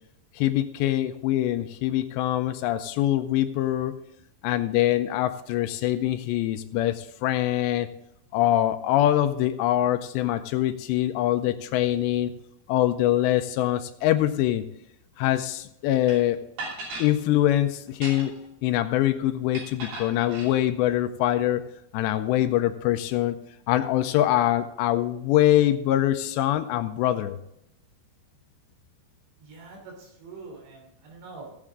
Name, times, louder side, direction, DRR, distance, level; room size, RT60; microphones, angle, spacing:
voice 1, 0.4-4.0 4.4-7.9 8.3-12.3 12.7-14.7 15.2-16.4 17.0-18.3 18.6-21.7 21.9-23.4 23.7-27.4, left 13 dB, 85° left, 9 dB, 2.7 m, -24 dB
sound 1, 16.1-16.2 16.6-17.1 17.9-18.5 19.5-20.5, right 2 dB, 60° right, 4.6 m, -36 dB
voice 2, 29.4-31.6, right 3 dB, 80° right, 1 dB, 5.6 m, -44 dB
16.5 x 7.4 x 3.7 m, 0.80 s
omnidirectional pair, 5.2 m